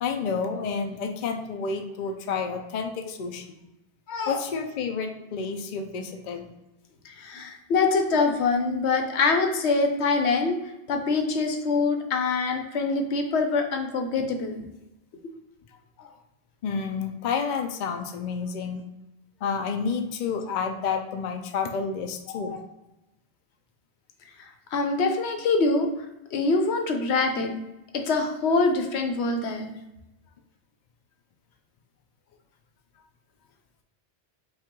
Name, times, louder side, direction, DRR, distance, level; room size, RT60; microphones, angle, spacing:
voice 1, 0.0-3.6 4.3-6.5 16.6-18.8 19.4-22.6, left 5 dB, 55° left, 5 dB, 0.6 m, -30 dB
voice 2, 4.1-4.4 7.0-10.6 10.9-14.6 16.0-16.1 22.3-22.6 24.7-25.9 26.3-27.5 27.9-29.7, left 3 dB, 85° left, 5 dB, 1.0 m, -24 dB
5.5 x 2.4 x 3.7 m, 0.97 s
omnidirectional pair, 1.1 m